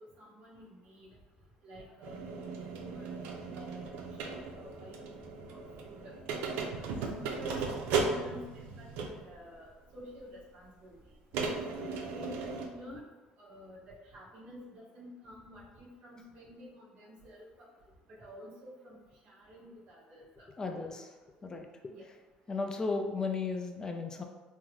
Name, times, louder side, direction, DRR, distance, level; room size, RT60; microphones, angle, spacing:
voice 1, 0.2-1.1 1.6-3.1 3.5-3.9 4.2-5.2 5.5-6.2 6.7-11.1 11.7-13.0 13.4-17.7 18.2-20.5 21.9-22.0, equal, 60° right, -6 dB, 1.0 m, -50 dB
sound 1, 2.0-9.3 10.2-10.3 11.3-12.7, right 4 dB, 85° right, 0.4 m, -36 dB
voice 2, 20.6-21.2 21.4-21.9 22.5-24.2, left 4 dB, 20° left, 4 dB, 0.4 m, -35 dB
3.8 x 2.0 x 3.0 m, 1.3 s
cardioid pair, 115°, 3 cm